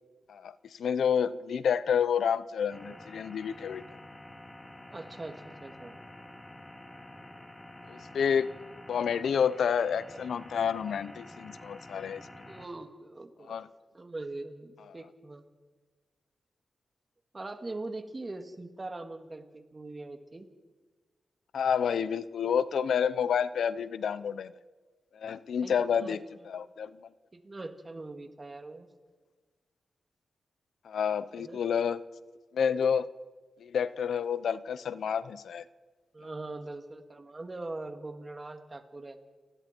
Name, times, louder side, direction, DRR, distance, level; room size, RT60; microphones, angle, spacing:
voice 1, 0.3-3.8 7.9-8.5 8.9-12.3 13.5-13.7 21.5-24.5 25.1-26.2 26.5-27.0 30.8-32.0 32.5-33.1 33.6-35.6, left 7 dB, 85° left, 15 dB, 0.7 m, -29 dB
sound 1, 2.7-12.7, left 1 dB, 15° left, 2.7 m, -49 dB
voice 2, 4.9-6.0 12.4-13.6 13.9-15.4 17.3-20.5 25.6-26.2 27.3-28.9 31.4-31.6 36.1-39.2, right 2 dB, 25° right, 6 dB, 2.3 m, -42 dB
30.0 x 20.0 x 4.6 m, 1.4 s
wide cardioid pair, 105°, 0 cm